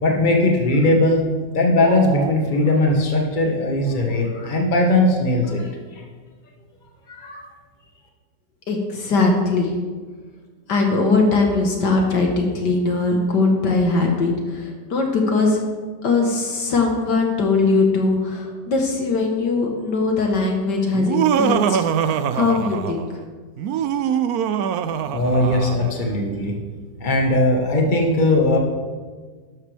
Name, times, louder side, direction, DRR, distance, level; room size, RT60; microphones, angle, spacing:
voice 1, 0.0-1.2 1.5-6.0 7.1-7.4 25.1-26.5 27.0-28.6, left 2 dB, 25° left, 0 dB, 1.6 m, -19 dB
sound 1, 1.8-2.4, right 9 dB, 90° right, 1.3 m, -30 dB
voice 2, 8.7-9.7 10.7-15.6 16.0-23.1, left 3 dB, 70° left, 1 dB, 2.0 m, -20 dB
Laughter, 20.9-23.1 23.6-25.9, right 8 dB, 70° right, 0.9 m, -23 dB
12.5 x 11.5 x 3.5 m, 1.5 s
omnidirectional pair, 2.0 m